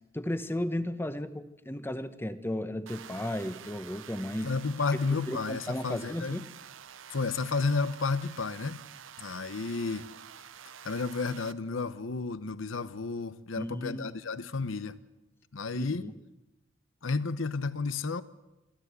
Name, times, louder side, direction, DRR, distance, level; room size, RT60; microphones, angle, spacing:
voice 1, 0.1-4.5 5.1-6.4 13.6-14.2 15.7-16.1, left 1 dB, 10° left, 1.0 m, -34 dB
sound 1, 2.9-11.5, right 8 dB, 80° right, 0.8 m, -48 dB
voice 2, 4.4-6.4 7.1-8.8 9.2-10.1 10.8-15.0 15.5-16.1 17.0-18.2, left 4 dB, 85° left, 0.9 m, -32 dB
26.5 x 12.5 x 8.1 m
head